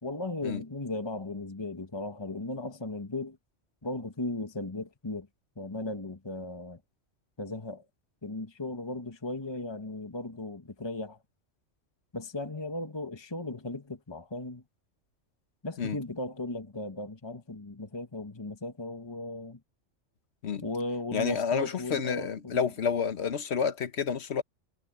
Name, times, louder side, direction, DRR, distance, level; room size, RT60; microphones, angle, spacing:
voice 1, 0.0-3.4 3.8-5.3 5.6-6.8 7.4-7.8 8.2-11.2 12.1-14.6 15.6-19.6 20.6-22.7, left 2 dB, 20° left, 1.5 m, -36 dB
voice 2, 21.1-24.4, left 6 dB, 60° left, 1.3 m, -29 dB
omnidirectional pair, 1.3 m